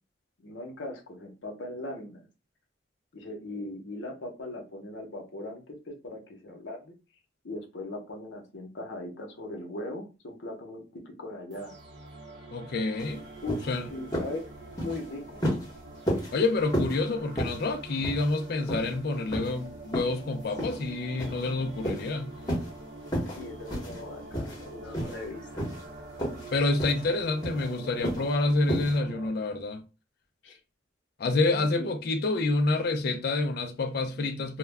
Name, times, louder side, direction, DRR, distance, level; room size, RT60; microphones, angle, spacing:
voice 1, 0.4-2.2 3.1-6.9 7.4-11.8 13.4-13.6 13.9-14.5 14.8-15.5 23.4-25.7 30.4-30.6 31.5-31.9, left 2 dB, 70° left, 0.7 m, -39 dB
sound 1, 11.5-29.3, right 2 dB, 55° right, 0.7 m, -45 dB
voice 2, 12.5-13.3 13.7-13.9 16.3-22.4 26.5-29.8 31.2-34.6, left 2 dB, 50° left, 0.4 m, -28 dB
sound 2, 13.0-13.1 13.5-13.7 14.1-14.4 14.7-15.0 15.4-15.7 16.1-16.3 16.7-17.0 17.4-17.6 18.0-18.4 18.7-18.9 19.3-19.5 19.9-20.2 20.6-20.8 21.2-21.5 21.8-22.1 22.5-22.7 23.1-23.4 23.7-24.0 24.3-24.6 24.9-25.2 25.6-25.9 26.2-26.5 26.8-27.0 27.4-27.7 28.0-28.3 28.7-29.0, equal, 20° left, 0.9 m, -31 dB
2.2 x 2.0 x 3.3 m
head